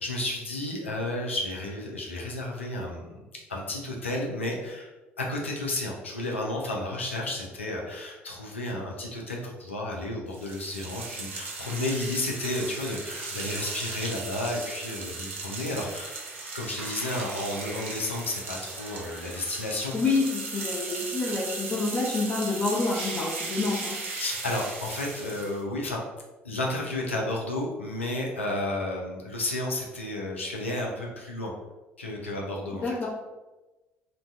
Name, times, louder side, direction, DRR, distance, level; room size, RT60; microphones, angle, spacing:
voice 1, 0.0-3.2 3.5-4.9 5.2-16.2 16.5-20.0 24.1-26.0 26.4-31.5 32.0-33.1, left 2 dB, 85° left, -1 dB, 0.4 m, -32 dB
sound 1, 10.3-25.6, right 3 dB, 80° right, 0.5 m, -37 dB
voice 2, 19.9-24.0 32.8-33.1, left 3 dB, 25° left, -6 dB, 0.9 m, -28 dB
2.6 x 2.2 x 3.4 m, 1.1 s
figure-of-eight pair, 55°, 6 cm